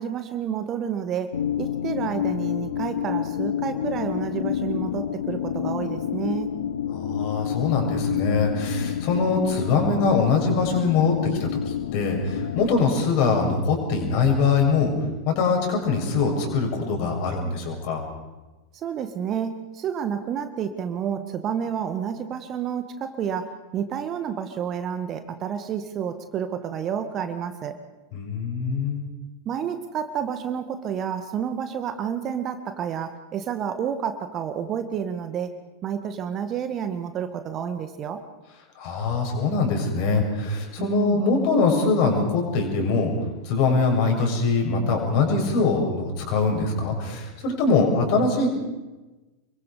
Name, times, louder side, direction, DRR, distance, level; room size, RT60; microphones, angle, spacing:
voice 1, 0.0-6.5 18.7-27.8 29.5-35.5 35.8-38.2 40.8-41.2, right 8 dB, 30° right, 9 dB, 1.9 m, -30 dB
sound 1, 1.3-12.8, left 9 dB, 65° left, 1.1 m, -29 dB
voice 2, 6.9-14.9 15.3-18.0 28.1-29.0 38.8-43.1 43.4-48.5, left 4 dB, 45° left, 2 dB, 6.9 m, -23 dB
28.5 x 23.0 x 5.1 m, 1.1 s
figure-of-eight pair, 90°, 0 cm